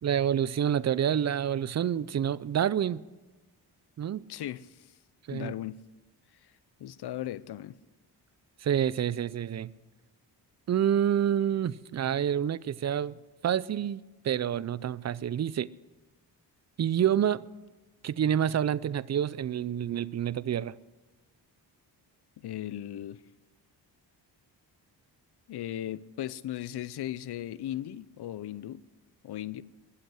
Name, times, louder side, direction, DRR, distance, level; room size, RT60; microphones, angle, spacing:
voice 1, 0.0-3.0 4.0-4.2 5.3-5.5 8.6-9.7 10.7-13.2 13.4-15.7 16.8-17.4 18.0-20.7, right 9 dB, 40° right, 0.5 m, -28 dB
voice 2, 4.3-4.9 5.3-5.8 6.8-7.8 22.4-23.2 25.5-28.8 29.2-29.6, left 12 dB, 65° left, 0.7 m, -37 dB
21.0 x 7.9 x 6.5 m
cardioid pair, 75°, 43 cm